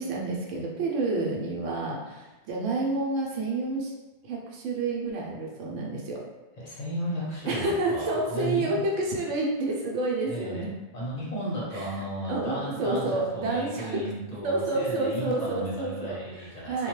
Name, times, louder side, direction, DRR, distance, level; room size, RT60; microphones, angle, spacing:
voice 1, 0.0-3.9 4.2-6.2 7.5-10.8 11.7-12.0 12.3-14.1 14.4-16.9, right 2 dB, 85° right, -2 dB, 0.9 m, -29 dB
voice 2, 6.6-8.7 10.3-10.7 10.9-16.9, equal, 40° left, -7 dB, 0.8 m, -34 dB
2.2 x 2.2 x 3.0 m, 1.1 s
omnidirectional pair, 1.2 m